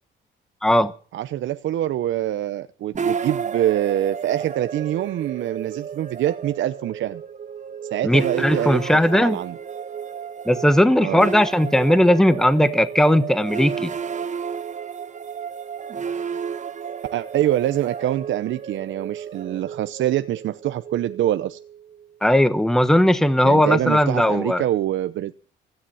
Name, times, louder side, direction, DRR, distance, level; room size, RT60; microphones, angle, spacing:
voice 1, 0.6-0.9 8.0-9.4 10.5-13.9 22.2-24.6, left 1 dB, 5° left, 1.2 m, -18 dB
voice 2, 1.1-7.2 7.9-9.6 11.0-11.3 17.1-21.6 23.4-25.3, right 12 dB, 75° right, 0.8 m, -25 dB
sound 1, 2.9-22.1, right 7 dB, 40° right, 1.2 m, -32 dB
16.5 x 13.0 x 5.7 m
cardioid pair, 90°, 20 cm